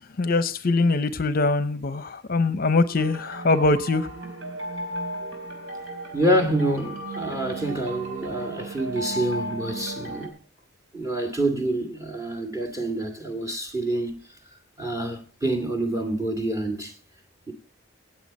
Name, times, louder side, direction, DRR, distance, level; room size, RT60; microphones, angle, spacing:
voice 1, 0.2-4.1, left 3 dB, 50° left, 0.6 m, -22 dB
sound 1, 3.0-10.3, right 1 dB, 75° right, 4.0 m, -35 dB
voice 2, 6.1-10.3 10.9-14.2 14.8-16.9 17.5-17.6, right 1 dB, 15° right, 2.3 m, -27 dB
17.5 x 8.0 x 4.1 m
head